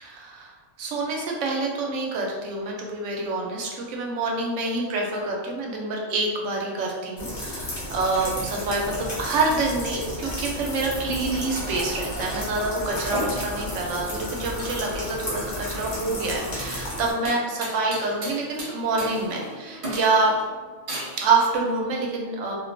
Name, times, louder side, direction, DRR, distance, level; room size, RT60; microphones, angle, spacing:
voice 1, 0.0-20.4 21.2-22.5, right 3 dB, 85° right, -1 dB, 0.9 m, -27 dB
sound 1, 7.2-17.1, left 1 dB, 40° left, 0.7 m, -33 dB
sound 2, 13.1-21.3, equal, 40° right, 0.5 m, -36 dB
2.3 x 2.2 x 2.5 m, 1.4 s
omnidirectional pair, 1.2 m